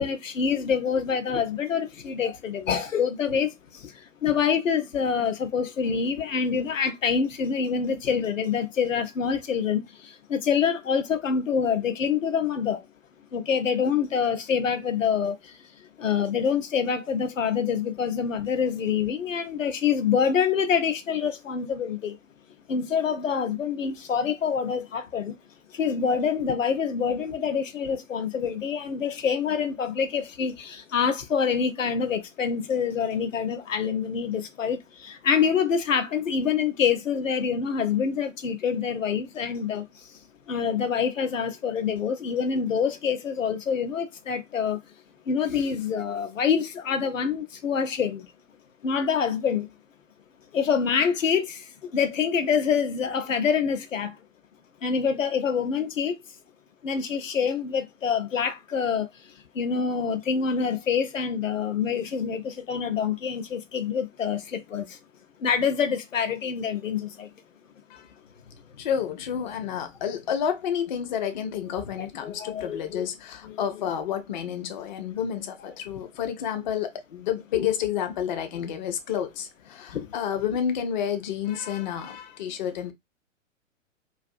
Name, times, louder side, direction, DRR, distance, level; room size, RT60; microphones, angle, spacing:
voice 1, 0.0-3.5 3.8-3.9 4.2-12.8 13.3-15.4 16.0-22.2 22.7-25.3 25.7-39.9 40.5-44.8 45.3-48.3 48.8-49.7 50.5-54.1 54.8-56.1 56.8-59.1 59.6-64.9 65.4-67.3 72.2-73.1 73.4-73.6 79.9-80.1, left 6 dB, 75° left, 0.7 m, -26 dB
voice 2, 68.8-82.9, left 8 dB, 40° left, 0.4 m, -30 dB
2.4 x 2.4 x 2.5 m
figure-of-eight pair, 110°, 39 cm